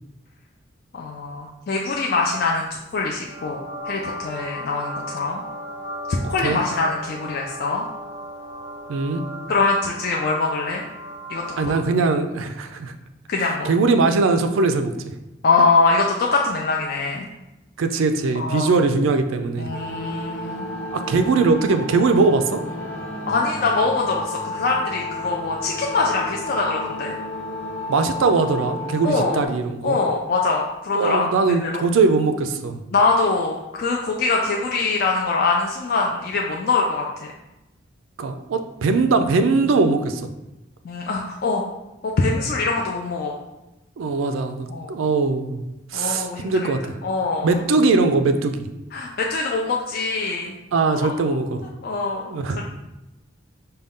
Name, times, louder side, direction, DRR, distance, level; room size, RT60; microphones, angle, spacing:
voice 1, 0.9-5.4 6.3-7.8 9.5-10.8 11.3-11.7 13.3-13.7 15.4-17.3 18.4-18.7 19.6-20.7 23.3-27.1 29.0-29.4 29.8-31.3 31.6-31.8 32.9-37.1 40.8-41.6 42.0-43.4 44.7-44.9 45.9-46.7 47.0-47.5 48.9-50.5 50.9-51.4 51.8-52.3, left 3 dB, 50° left, -1 dB, 0.4 m, -23 dB
sound 1, 3.2-12.0, equal, 20° right, 0.6 m, -36 dB
voice 2, 8.9-9.2 11.6-13.0 13.4-14.9 17.8-19.7 20.9-22.6 27.9-30.0 30.9-32.8 38.2-40.3 44.0-45.6 45.9-46.8 47.4-48.7 50.7-51.6 52.3-52.6, right 3 dB, 80° right, 8 dB, 0.4 m, -20 dB
sound 2, 19.7-29.5, left 2 dB, 65° left, 0.9 m, -32 dB
5.1 x 2.2 x 3.5 m, 0.96 s
head